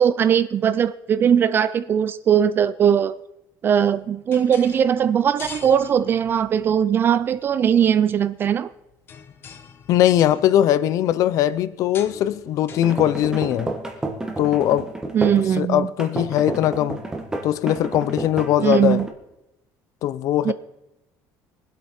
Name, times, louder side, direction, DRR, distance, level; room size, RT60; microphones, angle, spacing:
voice 1, 0.0-3.1 3.6-8.7 15.1-15.9 18.6-19.1 20.4-20.5, right 8 dB, 30° right, 15 dB, 0.4 m, -19 dB
sound 1, 3.8-15.1, left 6 dB, 30° left, 1.0 m, -46 dB
voice 2, 9.9-13.7 14.4-14.9 15.5-17.0 17.4-19.0 20.0-20.5, left 12 dB, 50° left, 16 dB, 0.6 m, -20 dB
sound 2, 12.7-15.5 16.0-19.1, right 2 dB, 10° right, 1.3 m, -30 dB
23.0 x 8.2 x 4.3 m, 0.90 s
cardioid pair, 160°, 7 cm